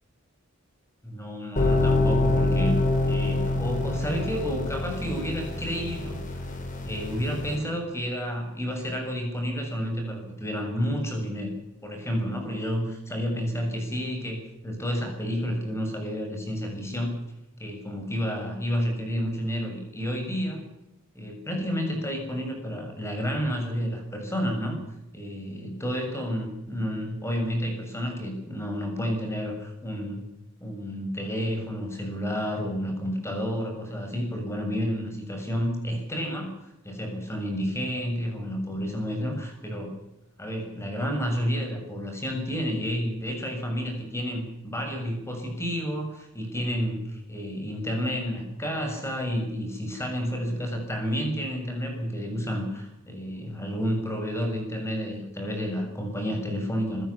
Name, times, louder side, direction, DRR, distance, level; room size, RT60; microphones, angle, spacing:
voice 1, 1.0-6.2 6.8-11.5 11.8-17.2 17.6-20.6 21.1-24.8 25.1-30.2 30.6-36.5 36.8-39.9 40.4-57.1, equal, 10° left, 3 dB, 6.8 m, -30 dB
sound 1, 1.6-7.6, left 2 dB, 35° left, 5.2 m, -26 dB
26.0 x 16.0 x 7.3 m, 0.90 s
head